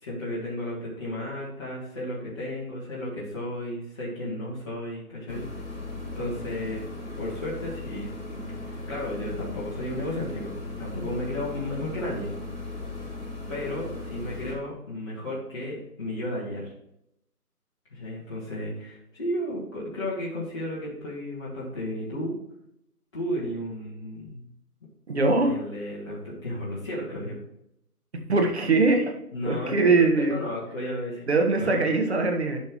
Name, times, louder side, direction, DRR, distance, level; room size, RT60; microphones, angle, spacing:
voice 1, 0.0-5.4 6.1-6.8 7.2-8.1 8.6-12.3 13.5-16.7 17.9-22.3 23.1-24.4 25.4-27.4 29.3-31.2 31.6-31.9, left 1 dB, 20° left, -7 dB, 1.6 m, -33 dB
sound 1, 5.3-14.6, left 2 dB, 45° left, 3.3 m, -37 dB
voice 2, 25.1-25.5 28.3-29.1 29.5-30.4 31.3-32.6, right 3 dB, 45° right, 3 dB, 1.4 m, -22 dB
11.5 x 5.5 x 3.0 m, 0.78 s
figure-of-eight pair, 160°, 47 cm